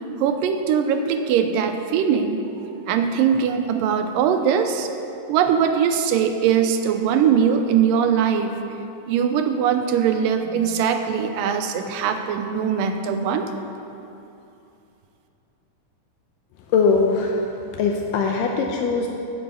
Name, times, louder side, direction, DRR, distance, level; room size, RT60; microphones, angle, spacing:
voice 1, 0.2-2.4 2.9-4.9 5.3-8.6 9.1-13.5, right 7 dB, 85° right, 6 dB, 2.3 m, -21 dB
voice 2, 16.7-19.1, left 4 dB, 80° left, 2 dB, 2.2 m, -21 dB
8.6 x 7.0 x 8.1 m, 2.8 s
omnidirectional pair, 3.9 m